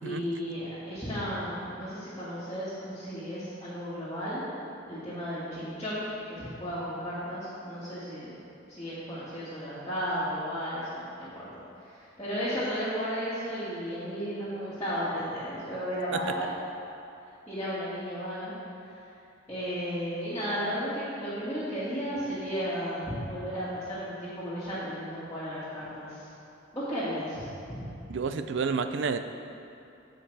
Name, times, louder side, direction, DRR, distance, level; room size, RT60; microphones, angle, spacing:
voice 1, 0.0-4.4 4.9-8.4 8.7-11.5 11.8-16.5 17.5-19.0 19.5-26.3 26.7-28.2, equal, 15° left, -14 dB, 2.0 m, -34 dB
voice 2, 28.1-29.2, right 5 dB, 65° right, 9 dB, 0.4 m, -29 dB
14.5 x 5.1 x 3.3 m, 2.7 s
head